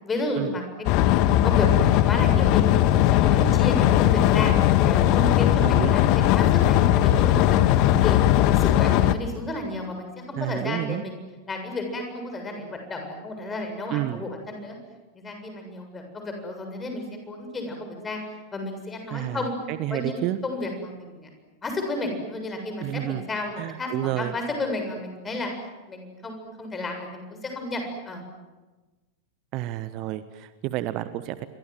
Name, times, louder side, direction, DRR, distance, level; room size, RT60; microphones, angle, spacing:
voice 1, 0.0-0.6 1.1-4.5 4.8-7.6 8.0-8.2 8.5-11.2 11.5-14.8 15.1-18.2 18.5-19.6 19.9-21.3 21.6-23.9 24.2-25.5 25.9-28.2, left 2 dB, 15° left, 4 dB, 7.3 m, -32 dB
sound 1, 0.8-9.1, left 13 dB, 40° left, 1.4 m, -19 dB
voice 2, 5.6-6.0 10.3-11.0 13.9-14.2 19.1-20.4 22.8-23.2 23.6-24.3 29.5-31.5, right 15 dB, 40° right, 13 dB, 1.2 m, -30 dB
28.0 x 24.5 x 7.8 m, 1.2 s
figure-of-eight pair, 90°, 0 cm